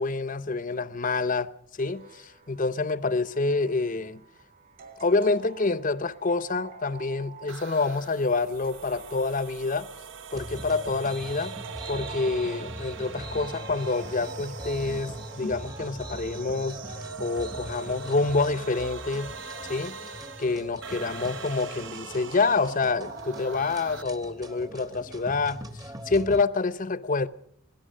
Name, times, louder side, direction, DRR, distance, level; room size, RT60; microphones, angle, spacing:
voice 1, 0.0-4.2 5.0-9.9 10.3-11.6 11.9-19.3 19.7-20.0 20.4-25.6 26.1-27.3, left 3 dB, 40° left, 0.8 m, -27 dB
sound 1, 1.8-15.5, right 4 dB, 40° right, 2.3 m, -49 dB
sound 2, 7.5-24.0, right 6 dB, 60° right, 0.9 m, -42 dB
sound 3, 10.3-26.4, equal, 20° right, 1.1 m, -41 dB
24.5 x 17.0 x 6.5 m
head